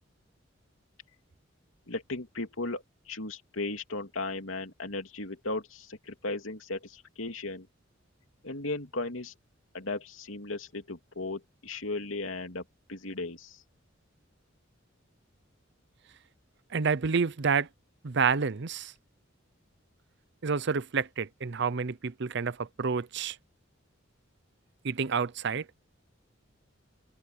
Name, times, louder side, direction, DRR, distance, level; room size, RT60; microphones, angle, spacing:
voice 1, 1.9-7.7 8.4-9.3 9.7-12.6 12.9-13.6, left 2 dB, 90° left, 2.8 m, -36 dB
voice 2, 16.7-17.7 18.0-18.9 20.4-23.4 24.8-25.6, right 5 dB, 60° right, 0.7 m, -29 dB
head